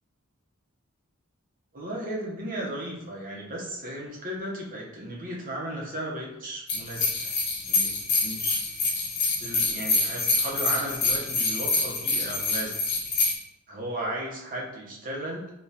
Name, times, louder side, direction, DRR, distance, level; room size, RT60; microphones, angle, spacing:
voice 1, 1.7-7.3 7.7-8.6 9.4-12.7 13.7-15.4, right 1 dB, 40° right, -3 dB, 0.9 m, -35 dB
sound 1, 6.7-13.4, left 3 dB, 55° left, 0.7 m, -26 dB
3.4 x 3.0 x 2.8 m, 0.86 s
head